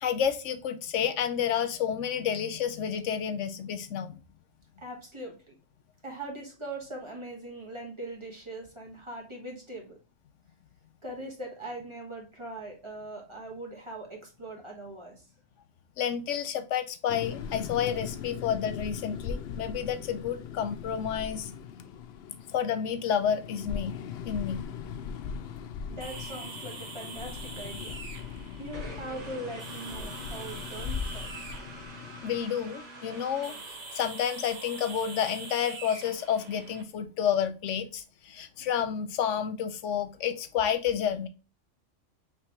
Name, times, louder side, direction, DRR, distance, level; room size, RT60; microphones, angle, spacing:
voice 1, 0.0-4.2 16.0-21.5 22.5-24.0 24.3-24.6 32.2-33.5 33.9-41.3, left 8 dB, 90° left, 1.0 m, -30 dB
voice 2, 4.8-5.6 6.0-10.0 11.0-15.3 25.9-28.0 28.6-31.3 32.4-32.5, right 1 dB, 25° right, 1.3 m, -41 dB
sound 1, 17.1-32.5, left 7 dB, 65° left, 0.7 m, -39 dB
sound 2, 26.0-36.8, right 3 dB, 45° right, 0.8 m, -44 dB
sound 3, 28.7-34.3, right 1 dB, 70° right, 1.8 m, -47 dB
5.1 x 3.1 x 2.9 m
omnidirectional pair, 1.2 m